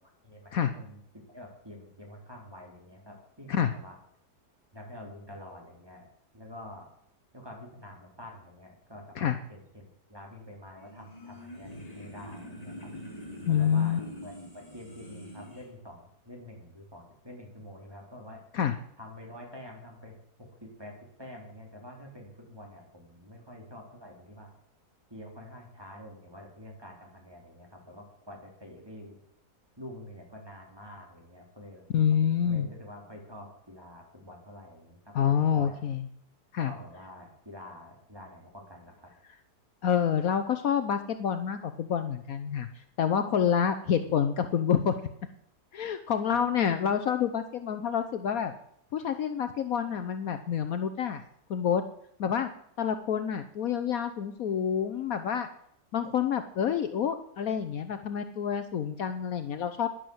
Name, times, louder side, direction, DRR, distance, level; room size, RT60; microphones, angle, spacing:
voice 1, 0.2-1.0 1.3-4.0 4.7-6.1 6.3-6.9 7.3-12.9 13.5-18.4 19.0-24.5 25.1-29.2 29.8-31.9 32.4-35.9 36.6-39.1 46.3-46.5, left 1 dB, 15° right, 0 dB, 3.6 m, -47 dB
sound 1, 10.8-15.7, equal, 20° left, 2.9 m, -44 dB
voice 2, 13.5-14.0 18.5-18.7 31.9-32.7 35.1-36.0 36.5-36.7 39.8-42.7 43.0-44.9 45.7-48.5 48.9-51.2 51.5-51.8 52.2-52.5 52.8-55.5 55.9-59.9, left 8 dB, 65° left, 9 dB, 1.2 m, -27 dB
11.0 x 11.0 x 7.8 m, 0.71 s
omnidirectional pair, 1.7 m